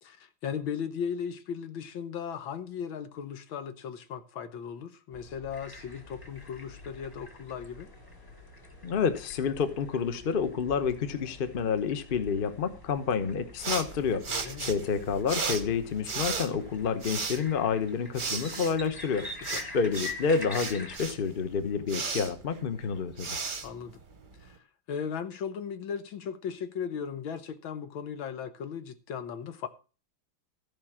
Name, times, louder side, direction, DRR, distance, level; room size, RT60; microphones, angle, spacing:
voice 1, 0.0-7.9 14.3-14.7 19.5-19.7 23.6-24.0 24.4-24.6 24.9-29.7, left 7 dB, 80° left, 1.8 m, -37 dB
sound 1, 5.1-16.9, left 1 dB, 60° left, 3.9 m, -51 dB
sound 2, 5.5-21.0, left 3 dB, 10° left, 1.5 m, -46 dB
voice 2, 8.8-23.4, left 6 dB, 40° left, 0.9 m, -29 dB
sound 3, 13.6-24.5, right 5 dB, 35° right, 0.9 m, -36 dB
14.0 x 5.3 x 7.3 m
omnidirectional pair, 2.2 m